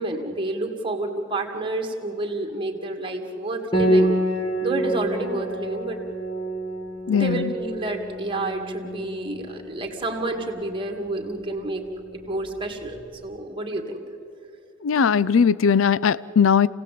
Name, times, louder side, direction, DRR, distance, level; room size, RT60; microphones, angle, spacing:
voice 1, 0.0-4.2 4.6-6.0 7.1-11.8 12.1-14.0, right 2 dB, 25° right, 4 dB, 2.3 m, -29 dB
Piano, 3.7-13.1, right 1 dB, 20° left, 3.4 m, -28 dB
voice 2, 7.1-7.5 14.8-16.7, left 6 dB, 75° left, 19 dB, 0.5 m, -19 dB
28.0 x 17.5 x 8.5 m, 2.8 s
head